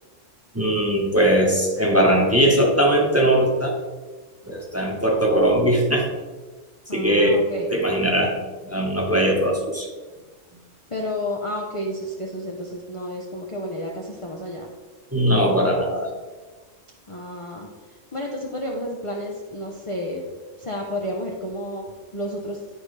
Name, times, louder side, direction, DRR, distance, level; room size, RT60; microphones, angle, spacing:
voice 1, 0.5-3.8 4.5-6.1 6.9-9.9 15.1-16.1, right 1 dB, 10° right, -2 dB, 1.2 m, -20 dB
voice 2, 6.9-7.8 10.9-14.7 17.1-17.7 18.1-20.2 20.6-21.9 22.1-22.6, left 1 dB, 30° left, -1 dB, 0.7 m, -31 dB
11.0 x 4.9 x 3.3 m, 1.3 s
omnidirectional pair, 1.3 m